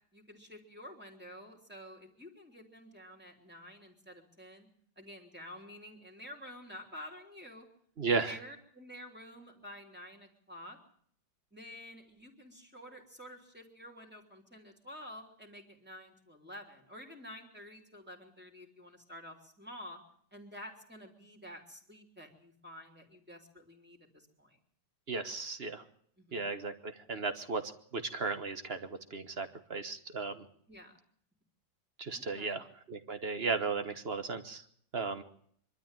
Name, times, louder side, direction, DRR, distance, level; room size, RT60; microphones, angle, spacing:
voice 1, 0.1-4.7 5.0-7.7 8.1-10.8 11.5-20.0 20.3-24.6 26.2-26.5 30.7-31.0 32.1-32.6, left 1 dB, 5° right, 2 dB, 3.2 m, -50 dB
voice 2, 8.0-8.3 25.1-25.8 26.3-27.6 27.9-30.4 32.0-34.6 34.9-35.2, right 4 dB, 35° right, 9 dB, 1.4 m, -35 dB
24.0 x 12.5 x 9.1 m, 0.63 s
omnidirectional pair, 1.9 m